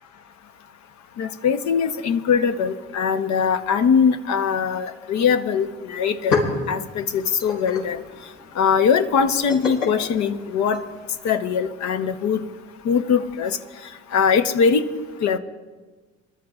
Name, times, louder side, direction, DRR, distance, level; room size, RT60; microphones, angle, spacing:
voice 1, 1.2-6.4 6.7-8.0 8.6-10.8 11.2-12.5 12.8-13.6 14.1-14.8 15.2-15.4, left 6 dB, 70° left, 8 dB, 0.9 m, -21 dB
sound 1, 6.1-11.2, left 4 dB, 85° left, 4.7 m, -30 dB
27.5 x 12.5 x 2.4 m, 1.3 s
supercardioid pair, 85°, 30 cm